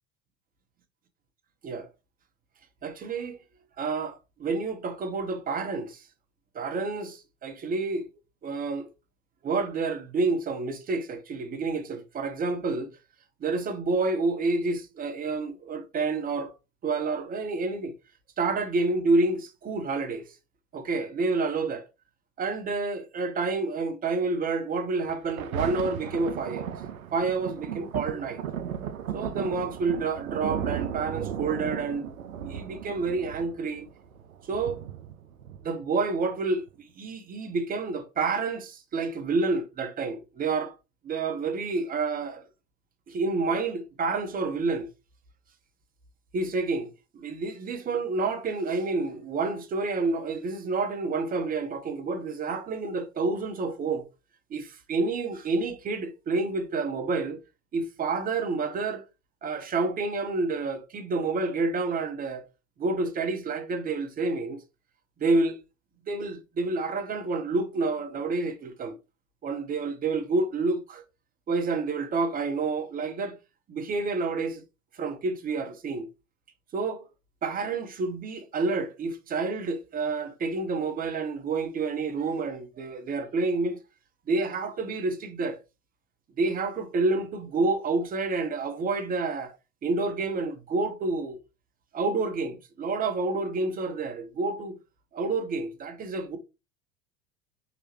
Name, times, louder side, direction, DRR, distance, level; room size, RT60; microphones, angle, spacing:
voice 1, 2.8-3.4 3.8-6.0 6.5-8.1 8.4-8.9 9.4-12.9 13.4-16.5 16.8-17.9 18.4-20.3 20.7-21.9 22.4-26.7 27.1-28.4 29.1-32.1 32.4-33.9 34.5-34.8 35.6-36.7 37.0-40.7 41.0-42.4 43.1-44.9 46.3-54.1 54.5-57.4 57.7-59.0 59.4-62.5 62.8-64.6 65.2-65.6 66.1-69.0 69.4-71.0 71.5-73.4 73.7-74.6 74.9-76.1 76.7-77.1 77.4-83.8 84.3-85.6 86.4-89.6 89.8-91.4 91.9-94.8 95.1-96.4, right 3 dB, 20° right, 0.7 m, -29 dB
Thunder, 25.0-36.0 36.7-36.8, right 9 dB, 80° right, 0.5 m, -36 dB
4.7 x 2.9 x 2.9 m
figure-of-eight pair, 80°, 42 cm